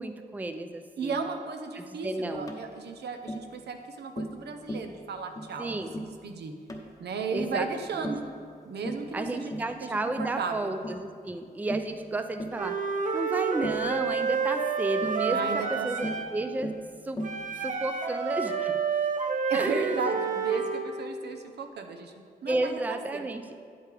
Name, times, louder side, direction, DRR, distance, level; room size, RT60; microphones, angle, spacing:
voice 1, 0.0-1.3 1.7-2.5 5.6-5.9 7.3-7.7 7.9-8.1 9.1-12.9 13.1-16.8 17.0-17.2 17.5-18.7 19.5-20.0 22.5-23.4, right 2 dB, 10° right, 8 dB, 0.4 m, -32 dB
voice 2, 1.0-6.5 7.0-8.2 8.7-9.9 10.2-10.7 15.3-16.2 19.5-22.1 22.4-22.7 23.1-23.3, right 5 dB, 90° right, 5 dB, 0.7 m, -35 dB
Tap, 2.5-2.7 3.3-3.5 4.2-4.4 4.7-4.9 5.4-5.6 5.9-6.2 6.7-6.9 7.4-7.6 8.0-8.3 8.8-9.1 9.5-9.8 10.2-10.4 10.8-11.0 11.7-11.9 12.4-12.6 13.6-13.9 15.0-15.2 16.0-16.3 16.6-16.9 17.2-17.4, equal, 20° left, 0.7 m, -36 dB
Wind instrument woodwind instrument, 12.6-16.4 17.2-20.9, right 6 dB, 50° right, 0.7 m, -29 dB
9.5 x 8.0 x 3.4 m, 2.2 s
wide cardioid pair, 135°, 17 cm